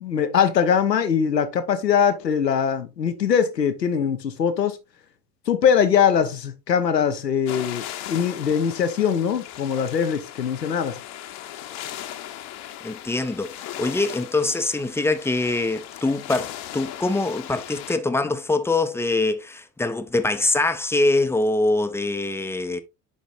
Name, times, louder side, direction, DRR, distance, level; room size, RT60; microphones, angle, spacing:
voice 1, 0.0-4.8 5.5-11.0, left 7 dB, 80° left, 1.0 m, -22 dB
sound 1, 7.5-18.0, left 12 dB, 50° left, 1.1 m, -38 dB
voice 2, 12.8-22.8, left 2 dB, 5° left, 0.7 m, -24 dB
10.5 x 5.0 x 2.6 m
figure-of-eight pair, 65°, 48 cm